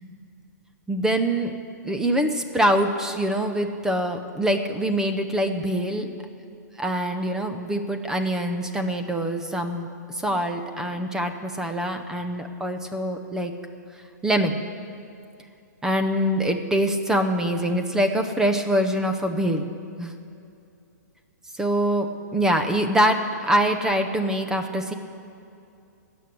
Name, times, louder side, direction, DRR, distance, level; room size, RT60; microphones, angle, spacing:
voice 1, 0.9-1.5 1.8-6.1 6.8-9.9 10.1-13.5 14.2-14.6 15.8-19.6 20.0-20.1 21.6-24.9, equal, 5° right, 6 dB, 0.7 m, -24 dB
17.5 x 7.0 x 9.8 m, 2.6 s
hypercardioid pair, 160°, 10 cm